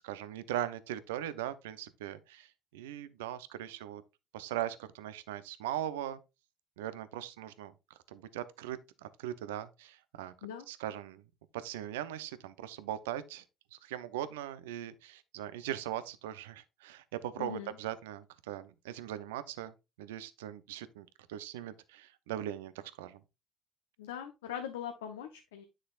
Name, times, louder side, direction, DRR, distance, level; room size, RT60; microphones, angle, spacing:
voice 1, 0.0-4.0 4.3-6.2 6.8-7.7 8.1-10.3 10.7-11.2 11.5-13.4 13.7-19.7 20.0-23.2, right 12 dB, 85° right, 0.6 m, -40 dB
voice 2, 17.4-17.8 24.0-25.6, left 9 dB, 85° left, 0.8 m, -41 dB
9.7 x 6.3 x 2.4 m
hypercardioid pair, 55°, 0 cm